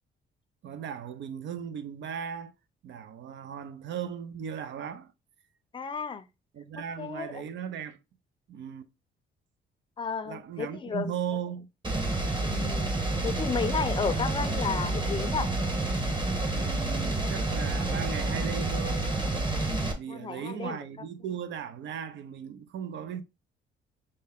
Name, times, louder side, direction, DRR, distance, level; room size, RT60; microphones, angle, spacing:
voice 1, 0.6-2.5 2.8-5.1 6.5-8.0 8.5-8.9 10.3-11.7 16.5-19.0 20.0-23.2, right 8 dB, 65° right, 0.6 m, -37 dB
voice 2, 5.7-6.3 7.0-7.4 10.0-11.1 12.4-12.9 13.2-15.5 20.1-20.8, left 5 dB, 25° left, 0.5 m, -32 dB
sound 1, 11.8-19.9, right 2 dB, 20° right, 1.3 m, -29 dB
5.4 x 2.1 x 3.5 m
cardioid pair, 90°, 20 cm